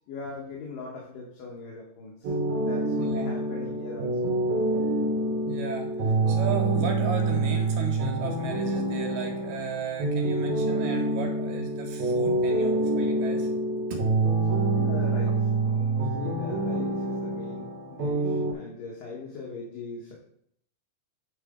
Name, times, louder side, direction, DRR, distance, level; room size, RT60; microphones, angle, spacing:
voice 1, 0.1-4.3 14.8-20.1, left 4 dB, 70° left, -1 dB, 2.7 m, -40 dB
sound 1, 2.2-18.5, right 2 dB, 60° right, 2.1 m, -26 dB
voice 2, 3.0-3.3 5.4-13.5 13.9-14.0, right 5 dB, 90° right, 3 dB, 3.5 m, -35 dB
8.9 x 4.5 x 5.0 m, 0.68 s
omnidirectional pair, 4.3 m